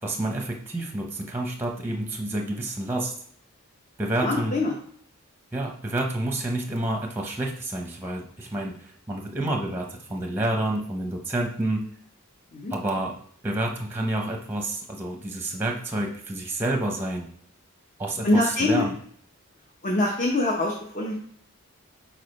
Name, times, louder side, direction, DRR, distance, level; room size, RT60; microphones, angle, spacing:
voice 1, 0.0-3.1 4.0-4.6 5.5-11.9 12.7-13.2 13.4-17.3 18.0-18.9, right 1 dB, 10° right, 1 dB, 0.8 m, -29 dB
voice 2, 4.2-4.7 12.5-12.7 18.2-18.8 19.8-21.1, left 2 dB, 35° left, -1 dB, 0.8 m, -24 dB
4.9 x 4.3 x 5.3 m, 0.62 s
head